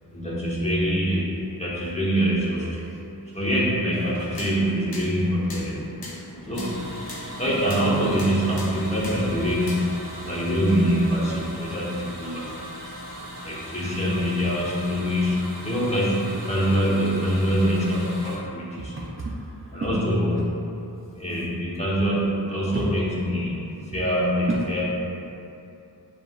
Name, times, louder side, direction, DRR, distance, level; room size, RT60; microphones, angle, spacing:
voice 1, 0.0-2.9 3.3-5.8 6.4-6.9 7.3-9.9 10.3-12.5 13.4-19.0 19.7-20.5 21.1-23.6 23.9-24.8, equal, 15° left, -7 dB, 1.1 m, -24 dB
sound 1, 3.9-10.0, left 2 dB, 65° left, 0.7 m, -41 dB
sound 2, 6.5-18.4, equal, 55° right, 1.5 m, -39 dB
voice 2, 18.8-19.9 22.7-22.9 24.5-24.6, right 3 dB, 35° right, -4 dB, 0.4 m, -32 dB
7.3 x 2.5 x 2.3 m, 2.8 s
wide cardioid pair, 70°, 40 cm